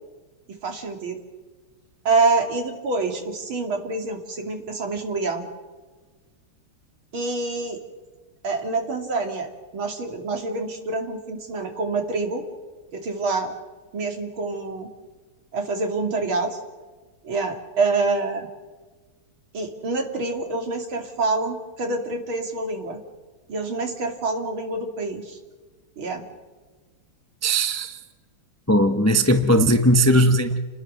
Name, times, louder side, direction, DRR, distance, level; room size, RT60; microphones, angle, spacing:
voice 1, 0.6-1.2 2.1-5.4 7.1-7.8 8.4-12.4 12.9-13.5 13.9-14.9 15.5-16.6 17.2-18.5 19.5-23.0 23.5-25.4 26.0-26.2, right 3 dB, 70° right, 4 dB, 3.6 m, -26 dB
voice 2, 27.4-28.0 28.7-30.6, equal, 15° left, 7 dB, 0.6 m, -18 dB
29.5 x 20.5 x 6.6 m, 1.3 s
omnidirectional pair, 2.4 m